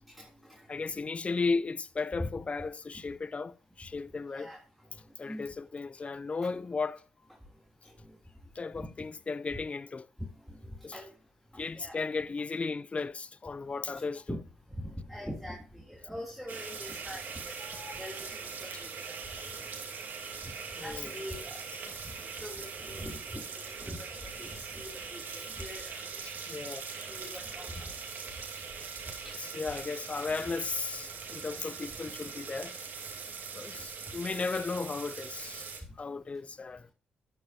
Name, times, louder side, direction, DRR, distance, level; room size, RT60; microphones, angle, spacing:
voice 1, 0.1-0.6 2.2-2.3 4.3-4.6 5.3-5.5 8.8-8.9 10.5-11.1 11.5-12.0 14.1-14.4 14.8-17.5 18.0-19.1 20.8-21.6 22.3-24.1 24.4-26.2 27.0-27.9 29.2-29.3, left 1 dB, ahead, 3.0 m, -43 dB
voice 2, 0.7-4.5 5.2-7.0 8.6-10.1 10.8-11.0 11.6-14.3 17.7-17.9 20.8-21.1 26.2-26.9 29.5-32.7 33.5-35.7 36.0-36.9, left 4 dB, 40° left, 0.5 m, -35 dB
sound 1, 16.5-35.8, right 5 dB, 65° right, 2.5 m, -41 dB
11.5 x 8.9 x 2.8 m
supercardioid pair, 55°, 3 cm